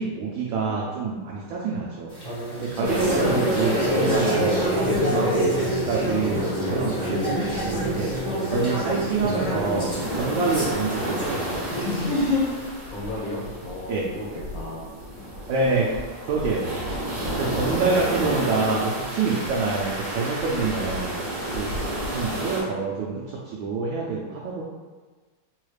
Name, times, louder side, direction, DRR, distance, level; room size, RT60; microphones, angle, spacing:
voice 1, 0.0-2.1 2.6-5.3 5.6-8.1 8.5-11.6 13.9-14.1 15.5-15.9 16.2-16.8 17.3-21.1 21.5-24.6, right 4 dB, 75° right, -4 dB, 1.2 m, -27 dB
sound 1, 2.1-12.6, equal, 15° left, 0.8 m, -26 dB
sound 2, 2.8-22.6, right 1 dB, 50° right, 1.1 m, -32 dB
voice 2, 12.9-14.9, left 1 dB, 70° left, -6 dB, 0.8 m, -35 dB
3.8 x 2.4 x 3.2 m, 1.3 s
omnidirectional pair, 2.3 m